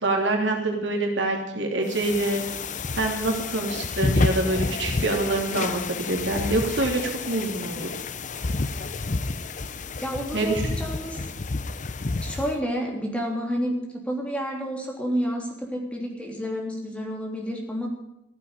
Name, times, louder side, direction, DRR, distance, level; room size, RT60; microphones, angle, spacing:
voice 1, 0.0-2.4 3.0-7.9 10.3-10.5, right 2 dB, 70° right, 2 dB, 3.2 m, -26 dB
sound 1, 1.9-12.6, left 3 dB, 40° left, 0.7 m, -29 dB
voice 2, 10.0-11.2 12.2-13.7 14.0-17.9, equal, 5° left, 0 dB, 3.4 m, -30 dB
15.5 x 8.4 x 9.9 m, 0.82 s
head